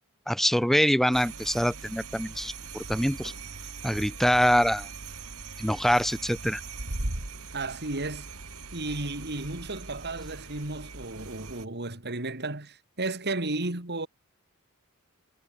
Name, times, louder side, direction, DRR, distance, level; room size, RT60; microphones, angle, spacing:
voice 1, 0.3-3.3 3.8-4.9 5.6-6.6, equal, ahead, 1.0 m, -24 dB
sound 1, 1.1-11.6, right 3 dB, 80° right, 3.3 m, -40 dB
voice 2, 7.5-8.3 8.7-14.1, right 2 dB, 50° right, 4.0 m, -33 dB
head